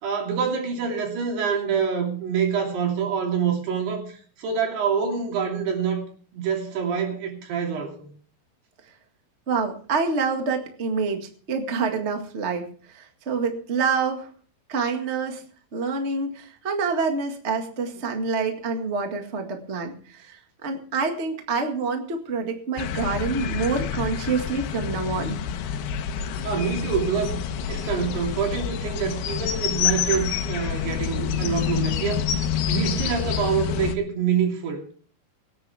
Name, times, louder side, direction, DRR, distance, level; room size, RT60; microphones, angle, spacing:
voice 1, 0.0-6.1 6.3-8.1 26.4-27.4 27.7-32.3 32.7-34.8, right 7 dB, 85° right, 1 dB, 4.9 m, -26 dB
voice 2, 9.5-14.3 14.7-15.4 15.7-25.4, right 4 dB, 40° right, 4 dB, 1.0 m, -27 dB
sound 1, 22.8-34.0, left 9 dB, 85° left, 3.0 m, -28 dB
24.0 x 9.7 x 3.5 m, 0.44 s
omnidirectional pair, 4.6 m